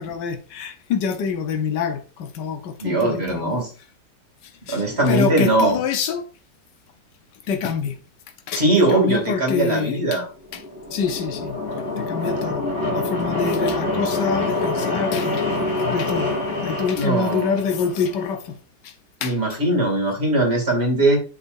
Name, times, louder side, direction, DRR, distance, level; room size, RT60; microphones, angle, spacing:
voice 1, 0.0-3.6 4.7-6.2 7.5-8.0 8.5-10.2 10.9-11.6 12.0-12.6 12.9-15.5 15.9-16.4 16.6-18.4 18.8-18.9 19.2-19.4, left 6 dB, 75° left, 1.7 m, -26 dB
voice 2, 2.8-3.7 4.7-5.8 8.5-10.3 16.9-17.6 19.2-21.2, right 2 dB, 35° right, 3.1 m, -20 dB
sound 1, 10.4-18.3, left 2 dB, 30° left, 4.2 m, -26 dB
8.3 x 7.0 x 2.7 m
omnidirectional pair, 1.9 m